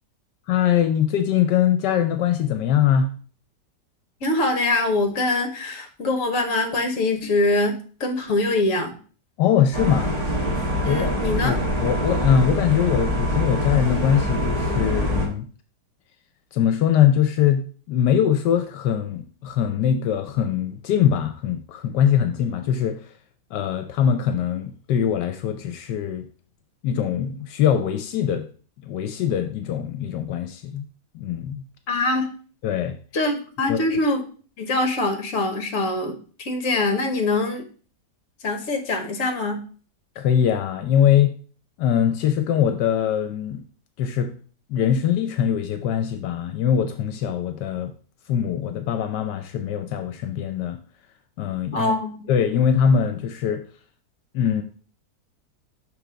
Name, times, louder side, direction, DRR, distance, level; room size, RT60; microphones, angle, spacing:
voice 1, 0.5-3.1 9.4-10.2 10.9-15.5 16.5-23.1 23.5-26.3 26.8-28.5 28.8-30.8 31.1-31.7 32.6-32.9 33.7-33.8 40.2-41.3 41.8-43.6 44.0-44.3 44.7-47.9 48.3-50.8 51.4-51.9 52.3-53.6 54.3-54.6, left 9 dB, 80° left, 1.2 m, -22 dB
voice 2, 4.2-9.0 10.8-11.6 31.9-32.3 33.1-34.2 34.6-37.6 38.4-39.6 51.7-52.3, left 2 dB, 55° left, 1.3 m, -23 dB
sound 1, 9.7-15.3, equal, 25° right, 1.6 m, -24 dB
6.1 x 3.5 x 5.0 m
omnidirectional pair, 1.8 m